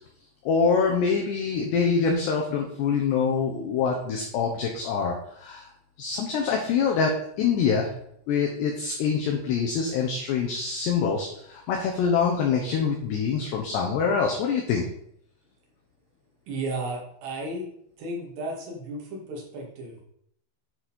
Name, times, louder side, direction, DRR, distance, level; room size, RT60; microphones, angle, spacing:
voice 1, 0.4-5.7 6.0-7.9 8.3-14.9, left 5 dB, 70° left, 1 dB, 2.7 m, -25 dB
voice 2, 16.5-17.7 18.0-20.0, right 2 dB, 60° right, -1 dB, 4.2 m, -34 dB
9.6 x 7.0 x 4.4 m, 0.71 s
omnidirectional pair, 6.0 m